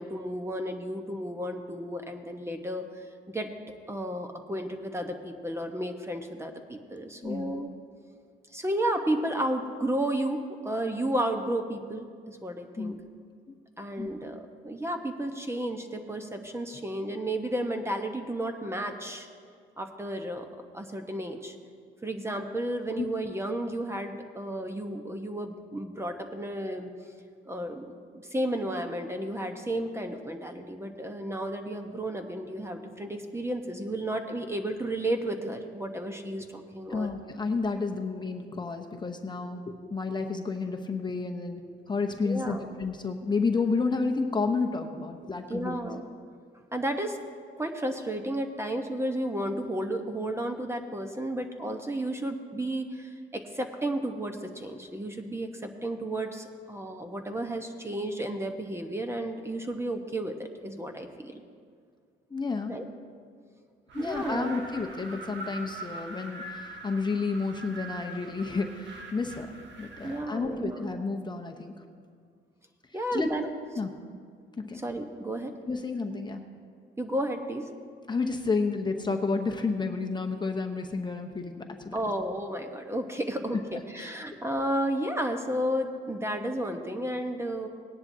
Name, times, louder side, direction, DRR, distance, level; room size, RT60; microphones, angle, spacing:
voice 1, 0.0-3.5 3.9-7.7 8.5-12.9 13.8-19.3 19.8-20.5 20.7-21.5 22.0-27.1 27.5-27.8 28.1-37.1 42.2-42.7 45.5-46.1 46.7-47.2 47.6-61.4 62.7-62.9 64.0-64.6 70.0-70.9 72.9-73.4 74.8-75.5 77.0-77.7 81.9-87.7, right 1 dB, 15° right, 5 dB, 1.0 m, -32 dB
voice 2, 7.2-7.6 12.8-13.0 13.5-13.6 14.0-14.1 23.0-23.1 36.9-41.6 41.9-45.8 62.3-62.7 63.9-69.5 69.8-71.7 73.1-73.3 73.8-73.9 74.6-74.8 75.7-76.4 78.1-81.9 84.0-84.1, left 4 dB, 20° left, 3 dB, 0.9 m, -31 dB
Wind, 63.9-70.3, right 1 dB, 65° right, 1.4 m, -43 dB
18.5 x 10.5 x 2.7 m, 2.1 s
cardioid pair, 90°, 20 cm